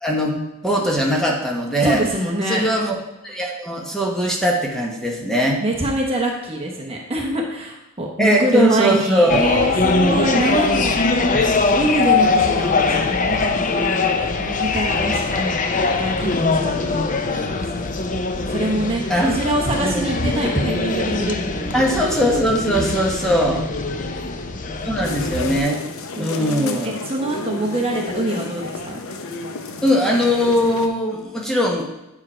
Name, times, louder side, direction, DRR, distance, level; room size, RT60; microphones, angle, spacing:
voice 1, 0.0-2.0 2.5-2.9 3.2-5.6 8.2-9.4 11.3-11.5 19.1-19.3 19.8-20.2 21.7-23.6 24.8-25.8 26.2-27.0 29.8-31.9, equal, 5° left, -1 dB, 1.1 m, -20 dB
voice 2, 1.8-2.6 5.6-11.0 11.7-15.7 16.0-17.6 18.5-21.9 23.9-24.4 26.1-29.0, right 1 dB, 30° right, -1 dB, 1.0 m, -24 dB
sound 1, 9.3-25.6, left 3 dB, 40° left, 0.6 m, -22 dB
sound 2, 25.0-30.9, left 3 dB, 75° left, 0.7 m, -31 dB
8.7 x 4.8 x 4.4 m, 0.95 s
head